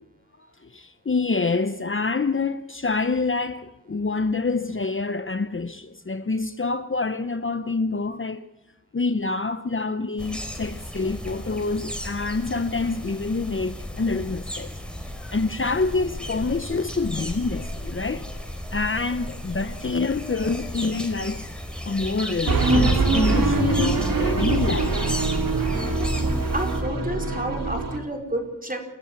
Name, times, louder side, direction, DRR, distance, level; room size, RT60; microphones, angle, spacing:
voice 1, 0.7-8.5 8.9-14.7 15.0-18.3 18.7-21.5 21.8-25.2, left 3 dB, 40° left, 0.9 m, -27 dB
sound 1, 10.2-26.8, equal, 5° left, 4.5 m, -34 dB
sound 2, 22.5-28.0, right 3 dB, 85° right, 3.2 m, -23 dB
voice 2, 26.5-28.8, right 1 dB, 25° right, 4.9 m, -30 dB
29.0 x 14.5 x 8.8 m
wide cardioid pair, 80°, 33 cm